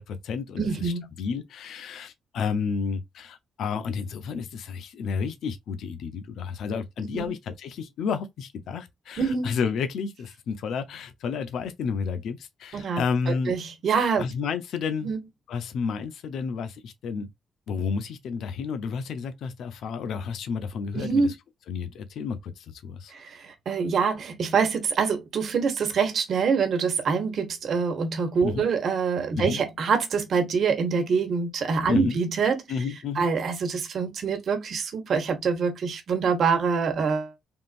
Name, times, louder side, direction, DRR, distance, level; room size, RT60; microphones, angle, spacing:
voice 1, 0.0-13.5 14.2-15.1 15.5-17.3 17.7-21.3 21.7-23.1 28.4-28.6 29.3-29.6 31.9-32.2 32.7-33.3, left 5 dB, 80° left, 0.5 m, -31 dB
voice 2, 0.6-1.1 7.1-7.3 9.2-9.5 12.7-14.3 15.0-15.2 20.9-21.3 23.1-32.6 33.1-37.4, right 5 dB, 60° right, 1.1 m, -25 dB
3.6 x 2.5 x 2.5 m
cardioid pair, 100°, 0 cm